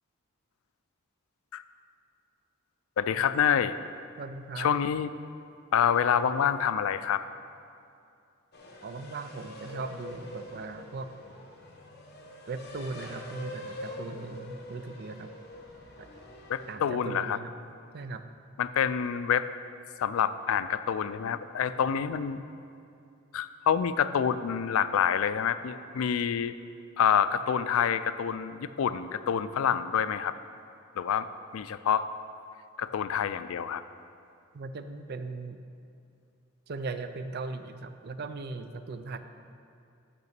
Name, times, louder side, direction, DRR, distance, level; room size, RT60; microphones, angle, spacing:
voice 1, 3.0-3.8 4.6-5.1 5.7-7.2 16.5-17.4 18.6-19.5 20.0-22.4 23.3-26.6 27.0-30.3 31.0-31.3 31.5-32.0 32.8-33.8, left 8 dB, 75° left, 13 dB, 0.3 m, -27 dB
voice 2, 4.2-4.7 8.8-11.1 12.5-15.3 16.0-16.1 16.7-17.5 17.9-18.2 34.5-35.6 36.7-39.2, right 3 dB, 50° right, 9 dB, 0.4 m, -38 dB
sound 1, 8.5-16.7, left 1 dB, 50° left, 1.2 m, -45 dB
6.8 x 6.1 x 6.6 m, 2.5 s
head